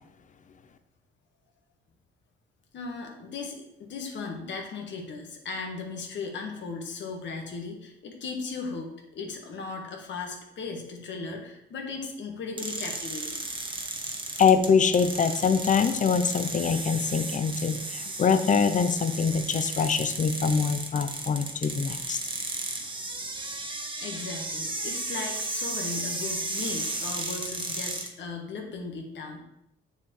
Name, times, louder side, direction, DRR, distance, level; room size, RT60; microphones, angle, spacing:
voice 1, 2.7-13.4 24.0-29.4, left 4 dB, 65° left, 2 dB, 1.5 m, -37 dB
sound 1, 12.6-28.1, right 2 dB, 25° right, 1.1 m, -34 dB
voice 2, 14.4-22.2, left 6 dB, 40° left, 10 dB, 0.7 m, -24 dB
7.0 x 6.9 x 3.2 m, 0.82 s
cardioid pair, 90°, 20 cm